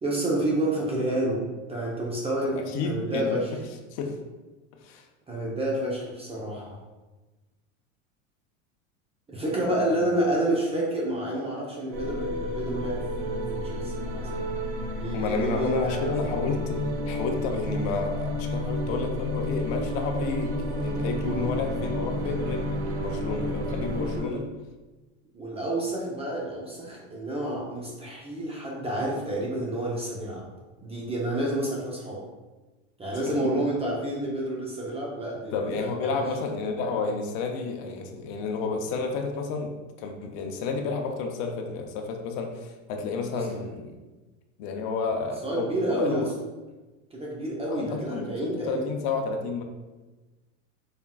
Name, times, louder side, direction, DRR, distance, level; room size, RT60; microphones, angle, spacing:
voice 1, 0.0-3.5 5.3-6.8 9.3-14.5 15.0-16.5 21.2-21.5 24.1-24.4 25.3-30.4 30.8-32.2 33.0-36.2 43.3-43.4 45.4-46.2 47.1-48.8, right 1 dB, 15° right, -4 dB, 0.7 m, -29 dB
voice 2, 2.7-3.4 3.9-4.2 4.8-5.1 9.7-10.0 15.1-16.8 17.1-24.5 33.3-33.5 35.5-43.9 44.6-46.3 47.7-49.6, left 4 dB, 55° left, 4 dB, 0.7 m, -31 dB
sound 1, 11.9-24.2, equal, 60° right, 0.8 m, -30 dB
4.4 x 3.5 x 2.3 m, 1.2 s
supercardioid pair, 110°, 39 cm